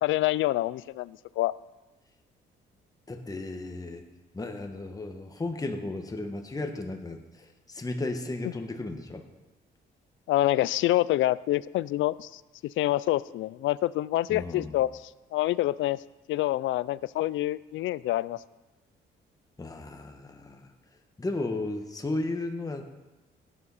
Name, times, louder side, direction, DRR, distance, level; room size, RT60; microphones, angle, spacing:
voice 1, 0.0-1.5 10.3-16.0 16.3-18.4, left 15 dB, 80° left, 20 dB, 0.4 m, -27 dB
voice 2, 3.1-4.0 4.3-9.2 14.3-14.8 19.6-20.7 21.2-22.8, left 2 dB, 20° left, 4 dB, 1.3 m, -34 dB
16.0 x 9.9 x 4.2 m, 1.1 s
cardioid pair, 90°, 20 cm